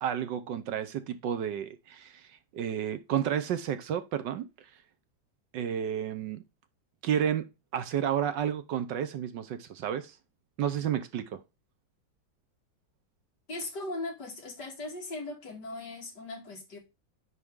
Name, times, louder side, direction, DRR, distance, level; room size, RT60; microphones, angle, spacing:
voice 1, 0.0-2.2 2.5-4.5 5.5-6.4 7.0-10.1 10.6-11.4, right 9 dB, 70° right, 1.4 m, -31 dB
voice 2, 13.5-16.8, left 2 dB, 60° left, 2.7 m, -38 dB
9.8 x 4.5 x 3.6 m
omnidirectional pair, 2.1 m